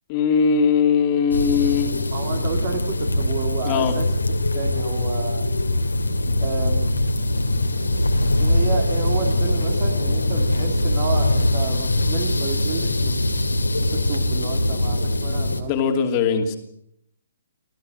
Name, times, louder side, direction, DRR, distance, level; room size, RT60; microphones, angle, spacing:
voice 1, 0.1-2.0 3.6-4.0 15.7-16.6, left 6 dB, 25° left, 5 dB, 2.7 m, -20 dB
sound 1, 1.3-15.6, left 1 dB, 75° left, 2.5 m, -22 dB
voice 2, 2.1-4.1 4.5-5.5 6.4-7.0 8.4-13.3 13.8-16.1, right 6 dB, 35° right, 3 dB, 2.6 m, -31 dB
25.0 x 16.0 x 7.8 m, 0.74 s
figure-of-eight pair, 130°, 0 cm